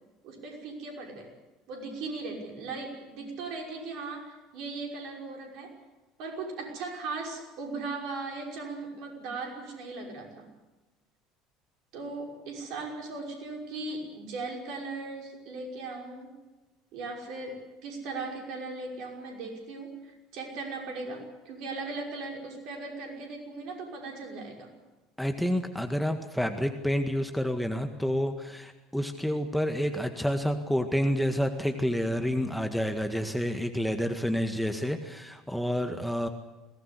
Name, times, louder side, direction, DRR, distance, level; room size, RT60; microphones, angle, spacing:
voice 1, 0.2-1.3 1.7-5.7 6.2-10.5 11.9-16.4 16.9-24.7, right 3 dB, 55° right, 1 dB, 5.7 m, -38 dB
voice 2, 25.2-36.3, equal, ahead, 6 dB, 1.8 m, -29 dB
22.0 x 18.5 x 8.3 m, 1.1 s
figure-of-eight pair, 65°, 0 cm